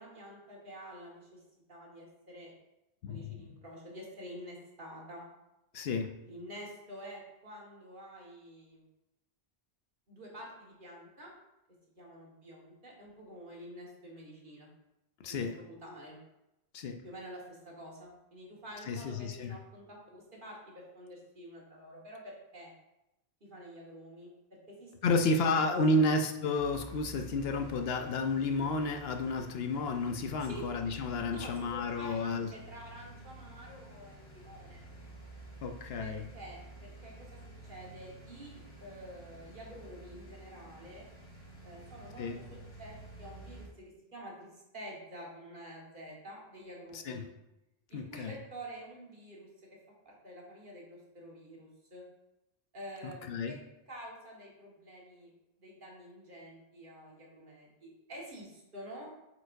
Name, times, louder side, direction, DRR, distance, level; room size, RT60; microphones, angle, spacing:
voice 1, 0.0-1.4 1.7-2.5 3.1-5.2 6.2-8.8 10.1-11.3 11.9-14.7 15.3-16.2 17.0-22.7 23.4-26.0 30.4-30.7 31.3-34.8 36.0-41.1 41.6-47.2 47.9-49.5 50.0-52.0 52.7-53.6 53.9-55.3 55.6-59.1, equal, 50° right, -3 dB, 1.7 m, -48 dB
voice 2, 3.0-3.4 5.7-6.1 15.2-15.5 16.7-17.0 18.9-19.6 25.0-32.5 35.6-36.3 42.2-42.4 46.9-47.3 47.9-48.3 53.3-53.5, left 2 dB, 70° left, 5 dB, 0.8 m, -31 dB
sound 1, 26.5-43.7, right 2 dB, 25° left, 2.4 m, -50 dB
8.2 x 4.6 x 2.6 m, 0.94 s
omnidirectional pair, 1.1 m